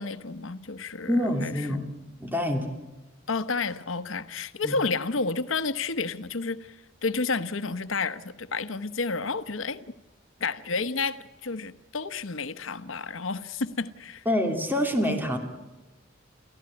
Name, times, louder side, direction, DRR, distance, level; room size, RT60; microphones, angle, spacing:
voice 1, 0.0-1.1 1.4-1.8 3.3-9.8 10.4-14.2, left 4 dB, 90° left, 1.1 m, -31 dB
voice 2, 1.1-1.8 2.2-2.7 4.6-4.7 14.2-15.4, left 1 dB, 10° right, 2.9 m, -26 dB
30.0 x 15.0 x 9.8 m
head